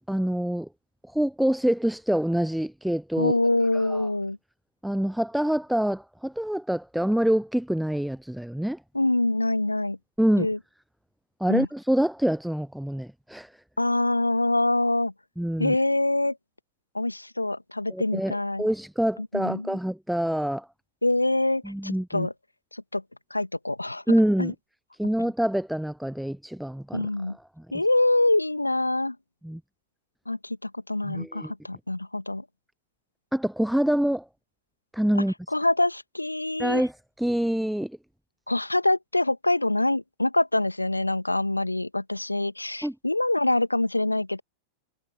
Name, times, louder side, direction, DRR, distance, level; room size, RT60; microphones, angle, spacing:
voice 1, 0.1-0.7 1.1-3.3 3.7-4.1 4.8-8.8 10.2-10.5 11.4-13.5 15.4-15.8 17.9-20.7 21.6-22.3 24.1-24.5 25.0-27.0 29.4-29.6 31.0-31.5 33.3-34.2 34.9-35.3 36.6-36.9 37.2-38.0 42.8-42.9, equal, ahead, 0.7 m, -26 dB
voice 2, 3.2-4.4 8.9-10.0 10.4-10.6 11.5-11.7 13.8-15.1 15.6-16.4 16.9-18.6 19.3-19.8 21.0-22.3 22.7-23.0 23.3-24.0 24.4-24.5 26.9-27.4 27.7-29.2 30.3-32.4 35.5-36.8 38.5-44.4, left 2 dB, 85° left, 2.1 m, -25 dB
figure-of-eight pair, 90°, 0 cm